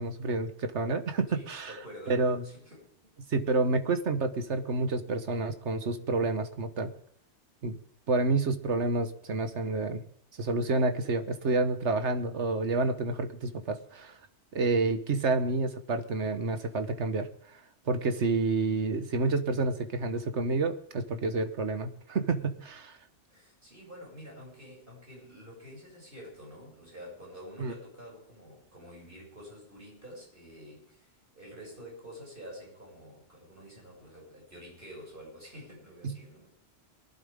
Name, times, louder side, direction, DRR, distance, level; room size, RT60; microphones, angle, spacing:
voice 1, 0.0-1.7 2.1-2.4 3.3-6.9 7.6-7.8 8.1-10.0 10.4-14.1 14.5-17.3 17.9-23.0 27.6-27.7 36.0-36.2, right 3 dB, 70° right, 8 dB, 1.6 m, -29 dB
voice 2, 1.3-3.1 23.3-36.5, equal, 45° right, -3 dB, 7.7 m, -48 dB
23.0 x 11.5 x 3.6 m, 0.62 s
omnidirectional pair, 1.2 m